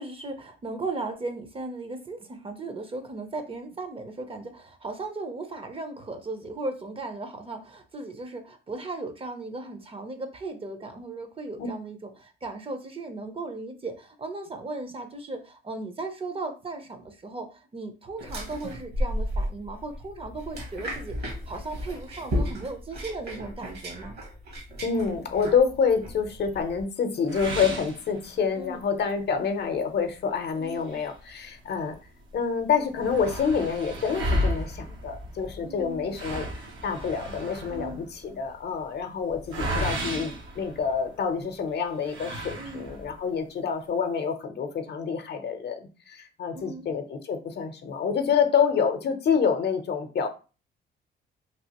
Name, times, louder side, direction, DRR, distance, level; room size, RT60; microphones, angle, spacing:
voice 1, 0.0-24.2 28.6-28.8 30.6-30.9 35.6-36.1 37.7-38.0 42.6-42.9 46.5-46.9, right 2 dB, 30° right, 7 dB, 0.6 m, -37 dB
sound 1, 18.2-26.8, equal, 55° right, 1.2 m, -34 dB
voice 2, 24.8-31.9 32.3-50.3, left 6 dB, 55° left, 6 dB, 0.7 m, -27 dB
sound 2, 27.3-28.7 29.2-29.3 29.7-29.8 30.6-32.0 32.3-32.4 32.6-41.3 42.0-43.2, equal, 75° right, 0.9 m, -33 dB
3.2 x 2.5 x 2.9 m, 0.33 s
cardioid pair, 90°, 20 cm